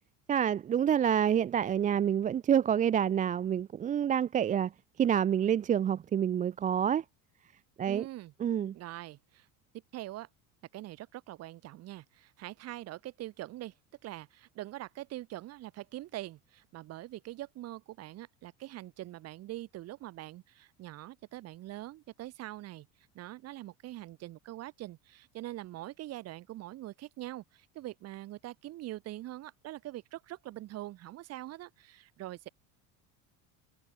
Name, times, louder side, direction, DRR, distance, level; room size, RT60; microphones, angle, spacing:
voice 1, 0.3-4.7 5.0-7.0 7.8-8.1 8.4-8.7, right 9 dB, 20° right, 0.6 m, -27 dB
voice 2, 7.9-8.3 8.7-9.5 9.9-10.3 10.7-13.7 14.0-22.9 23.1-32.5, right 15 dB, 40° right, 2.2 m, -43 dB
cardioid pair, 170°, 38 cm